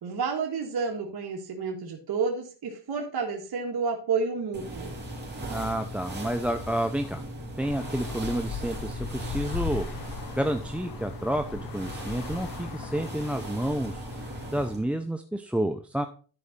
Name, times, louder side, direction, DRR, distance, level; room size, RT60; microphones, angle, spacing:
voice 1, 0.0-4.9, right 5 dB, 60° right, 1 dB, 1.7 m, -30 dB
sound 1, 4.5-14.8, right 1 dB, 25° right, 3.2 m, -38 dB
voice 2, 5.5-7.2 7.6-9.9 10.4-14.1 14.5-16.0, right 1 dB, 5° right, 8 dB, 0.5 m, -30 dB
Traffic noise roadway noise, 7.6-14.5, left 8 dB, 55° left, 0.8 m, -39 dB
11.0 x 4.8 x 4.1 m, 0.40 s
cardioid pair, 105°, 43 cm